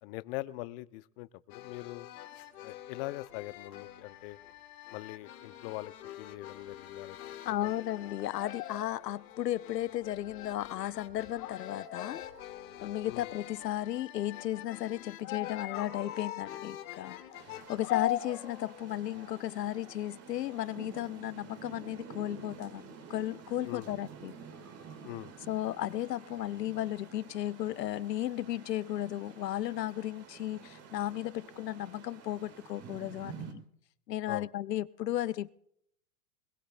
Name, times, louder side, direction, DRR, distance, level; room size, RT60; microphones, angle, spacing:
voice 1, 0.0-2.1 2.6-4.4 4.9-7.2 7.5-7.7 13.0-13.3 17.5-17.6 23.6-24.0 25.0-25.3 34.3-34.5, left 20 dB, 40° left, 18 dB, 0.5 m, -42 dB
sound 1, 1.5-21.1, left 13 dB, 60° left, 2.0 m, -43 dB
voice 2, 7.4-12.2 12.8-17.2 17.5-24.4 25.5-33.6 34.1-35.5, left 13 dB, 90° left, 19 dB, 0.6 m, -35 dB
sound 2, 17.3-33.5, right 6 dB, 30° right, 1.8 m, -50 dB
21.5 x 21.0 x 2.2 m, 0.71 s
hypercardioid pair, 110°, 47 cm